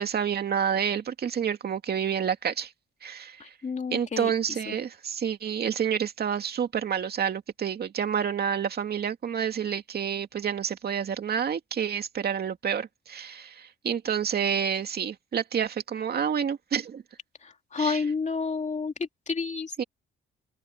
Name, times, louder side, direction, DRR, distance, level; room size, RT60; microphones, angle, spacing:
voice 1, 0.0-2.7 3.0-3.4 3.9-17.0 17.8-18.1 19.8-19.9, right 8 dB, 55° right, 2.4 m, -29 dB
voice 2, 3.6-4.3 4.7-4.8 17.7-18.9 19.3-19.8, left 5 dB, 35° left, 2.8 m, -29 dB
open air
cardioid pair, 90°, 20 cm